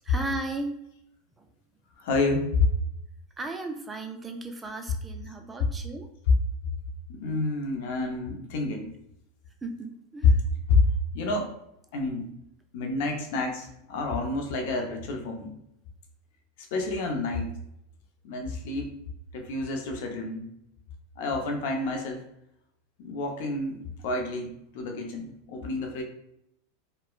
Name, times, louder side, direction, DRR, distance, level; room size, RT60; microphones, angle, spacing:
voice 1, 0.0-0.7 1.4-1.5 3.4-6.1 9.6-10.4, right 2 dB, 15° right, 5 dB, 0.4 m, -35 dB
voice 2, 2.0-2.7 5.6-5.7 7.1-8.9 10.7-10.8 11.1-11.5 11.9-12.3 12.7-15.5 16.7-17.5 18.2-19.0 19.3-20.4 21.2-22.2 23.0-26.0, left 3 dB, 65° left, 3 dB, 0.6 m, -29 dB
3.0 x 2.1 x 2.3 m, 0.79 s
hypercardioid pair, 105°, 0 cm